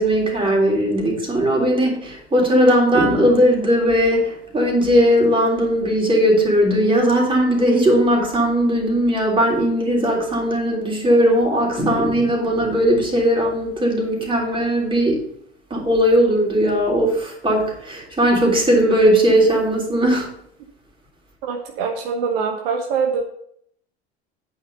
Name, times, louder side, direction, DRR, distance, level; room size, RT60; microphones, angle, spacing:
voice 1, 0.0-15.2 15.7-20.3, equal, 15° right, -2 dB, 3.4 m, -18 dB
voice 2, 21.4-23.2, right 5 dB, 60° right, 3 dB, 1.2 m, -23 dB
9.0 x 5.5 x 5.5 m, 0.68 s
figure-of-eight pair, 75°, 33 cm